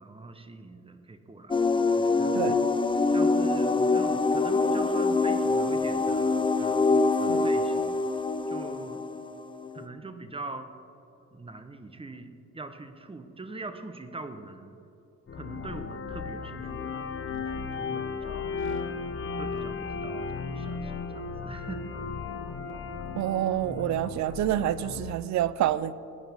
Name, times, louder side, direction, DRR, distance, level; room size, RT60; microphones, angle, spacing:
voice 1, 0.0-1.5 2.0-2.6 3.1-8.0 8.5-9.1 9.7-10.7 11.3-14.8 15.3-18.8 19.4-21.9, right 3 dB, 20° right, 0.9 m, -43 dB
sound 1, 1.5-9.9, left 3 dB, 15° left, 0.5 m, -25 dB
sound 2, 15.3-25.1, left 5 dB, 40° left, 0.9 m, -35 dB
voice 2, 23.2-25.9, right 12 dB, 65° right, 0.5 m, -27 dB
18.0 x 9.6 x 3.6 m
cardioid pair, 90°, 30 cm